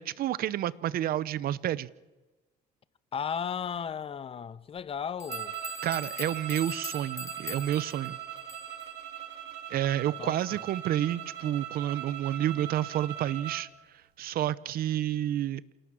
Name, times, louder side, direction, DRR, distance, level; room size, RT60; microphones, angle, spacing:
voice 1, 0.0-1.9 5.8-8.2 9.7-13.7 14.2-15.6, right 12 dB, 60° right, 0.7 m, -30 dB
voice 2, 3.1-5.5 10.2-10.3, left 7 dB, 35° left, 0.8 m, -35 dB
sound 1, 4.8-4.9 5.2-8.9, left 3 dB, 15° left, 1.1 m, -42 dB
sound 2, 5.3-13.7, right 11 dB, 85° right, 1.9 m, -40 dB
28.0 x 18.0 x 6.3 m
cardioid pair, 110°, 17 cm